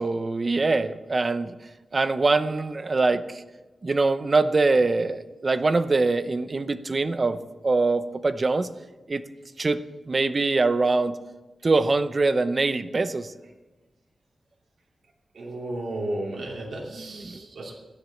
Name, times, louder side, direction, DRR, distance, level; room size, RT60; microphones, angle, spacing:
voice 1, 0.0-1.5 1.9-3.4 3.8-7.4 7.6-8.7 9.1-9.2 9.6-9.8 10.1-11.2 11.6-13.3 17.3-17.4, right 3 dB, 35° right, 12 dB, 0.7 m, -23 dB
voice 2, 15.3-17.7, right 1 dB, 80° right, -3 dB, 2.9 m, -33 dB
13.0 x 10.5 x 7.1 m, 1.2 s
wide cardioid pair, 145°, 0 cm